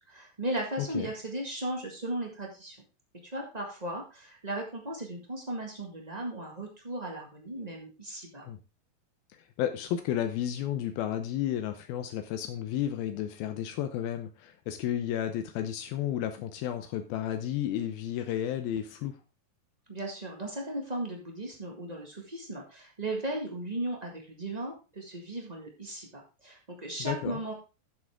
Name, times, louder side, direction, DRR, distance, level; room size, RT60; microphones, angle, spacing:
voice 1, 0.0-2.8 3.2-8.4 19.9-27.5, right 1 dB, 80° right, 0 dB, 0.3 m, -36 dB
voice 2, 0.8-1.1 8.4-8.6 9.6-19.1 27.0-27.4, left 11 dB, 85° left, 7 dB, 2.7 m, -32 dB
12.5 x 7.8 x 3.6 m, 0.31 s
omnidirectional pair, 4.2 m